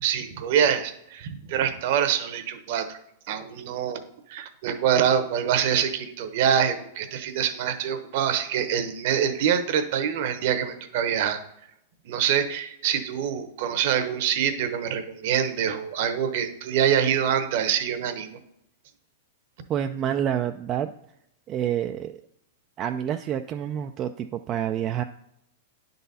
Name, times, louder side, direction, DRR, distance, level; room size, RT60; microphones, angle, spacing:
voice 1, 0.0-3.0 3.3-4.0 4.3-11.4 12.0-18.4, right 8 dB, 60° right, 9 dB, 0.9 m, -25 dB
voice 2, 19.7-20.9 21.5-22.2 22.8-25.0, right 10 dB, 30° right, 6 dB, 0.3 m, -28 dB
9.9 x 4.0 x 4.1 m, 0.79 s
hypercardioid pair, 135°, 0 cm